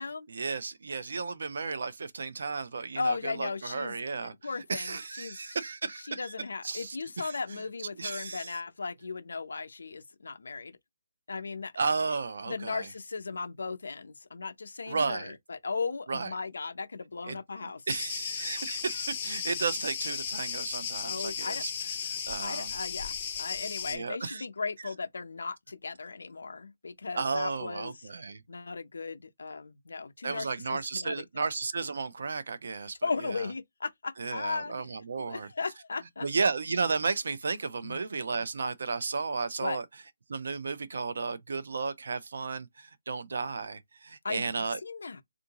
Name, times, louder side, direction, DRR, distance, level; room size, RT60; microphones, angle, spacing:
voice 1, 0.3-4.3 4.7-6.3 6.6-7.4 8.0-8.5 11.8-12.9 14.9-15.3 16.1-16.3 17.3-17.4 17.9-21.7 22.3-22.7 23.9-24.4 27.1-28.4 30.2-33.0 33.2-33.5 34.2-35.5 36.2-39.8 40.3-44.8, right 4 dB, 55° right, 0.5 m, -33 dB
voice 2, 3.0-5.6 6.0-10.8 11.3-11.7 12.5-17.8 21.0-21.6 22.4-28.1 28.5-31.2 33.0-34.9 35.2-36.3 37.8-38.1 39.6-39.8 43.3-43.5 44.2-45.2, left 4 dB, 85° left, 0.6 m, -37 dB
Cricket, 17.9-24.0, left 7 dB, 20° left, 0.5 m, -35 dB
3.6 x 2.5 x 2.8 m
hypercardioid pair, 180°, 0 cm